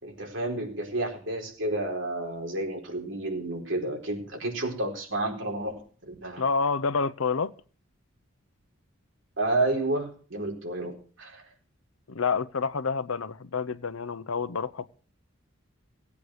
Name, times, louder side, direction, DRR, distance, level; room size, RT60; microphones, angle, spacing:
voice 1, 0.0-5.8 6.1-6.4 9.4-11.4, right 2 dB, 65° right, 2 dB, 4.3 m, -30 dB
voice 2, 6.4-7.5 12.1-14.9, left 5 dB, 80° left, 15 dB, 0.8 m, -28 dB
17.5 x 8.5 x 6.4 m, 0.41 s
head